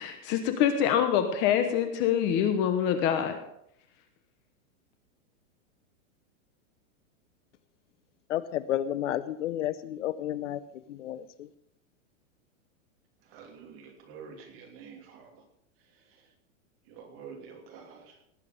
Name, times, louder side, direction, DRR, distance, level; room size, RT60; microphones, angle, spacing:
voice 1, 0.0-3.4, left 9 dB, 30° left, 7 dB, 1.1 m, -25 dB
voice 2, 8.3-10.6 10.9-11.5, left 12 dB, 60° left, 16 dB, 0.8 m, -31 dB
voice 3, 13.3-15.3 16.9-18.0, right 6 dB, 30° right, 2 dB, 2.9 m, -47 dB
18.5 x 8.4 x 5.2 m, 0.75 s
supercardioid pair, 160°, 40 cm